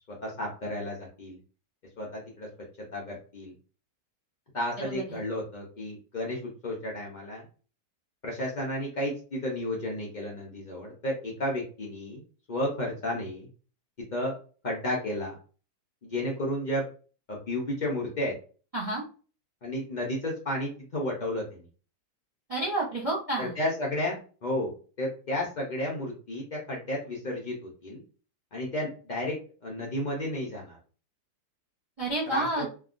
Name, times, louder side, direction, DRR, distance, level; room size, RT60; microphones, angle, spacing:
voice 1, 0.2-1.4 2.0-2.5 2.9-3.5 4.5-7.4 8.2-12.2 12.5-13.5 14.1-14.3 14.6-15.4 16.0-16.8 17.3-18.3 19.6-21.6 23.4-28.0 28.5-30.8 32.3-32.7, left 1 dB, 85° left, -3 dB, 0.4 m, -32 dB
voice 2, 4.8-5.2 18.7-19.0 22.5-23.5 32.0-32.7, right 2 dB, 65° right, -4 dB, 0.3 m, -30 dB
3.3 x 2.2 x 2.4 m, 0.37 s
omnidirectional pair, 1.8 m